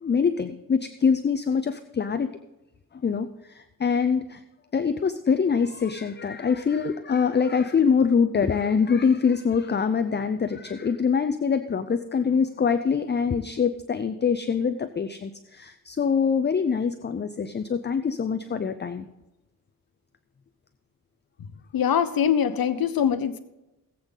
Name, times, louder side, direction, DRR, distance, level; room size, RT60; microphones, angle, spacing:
voice 1, 0.0-2.3 2.9-4.4 4.7-19.1, left 6 dB, 30° left, 10 dB, 0.5 m, -24 dB
voice 2, 21.7-23.4, left 8 dB, 80° left, 10 dB, 0.8 m, -23 dB
18.5 x 8.1 x 3.9 m, 0.96 s
wide cardioid pair, 170°, 35 cm